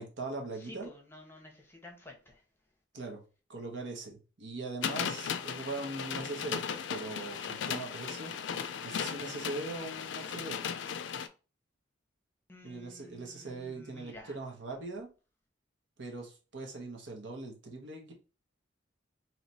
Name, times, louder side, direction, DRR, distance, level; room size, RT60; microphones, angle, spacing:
voice 1, 0.0-0.9 2.9-3.2 3.5-6.6 6.9-8.3 8.8-10.6 12.6-15.1 16.0-18.1, right 3 dB, 70° right, 1.0 m, -41 dB
voice 2, 0.5-2.4 12.5-14.4, left 1 dB, 10° left, 0.8 m, -51 dB
sound 1, 4.8-11.3, left 7 dB, 70° left, 0.4 m, -36 dB
3.2 x 2.9 x 4.1 m
head